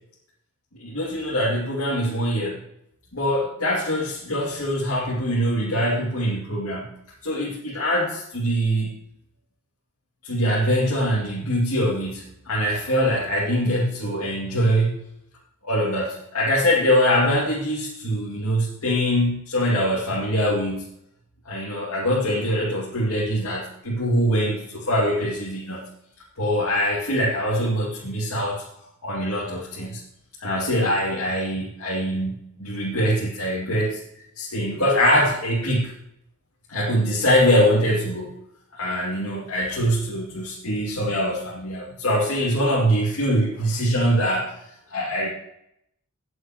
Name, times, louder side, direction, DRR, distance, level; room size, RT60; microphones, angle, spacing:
voice 1, 0.8-2.6 3.1-7.0 7.2-8.9 10.2-15.0 15.6-20.9 21.5-25.9 26.4-28.6 29.0-30.0 30.4-34.0 34.3-35.9 36.7-38.4 38.7-44.6 44.9-45.3, equal, 70° left, -6 dB, 2.5 m, -23 dB
18.0 x 7.7 x 3.0 m, 0.78 s
head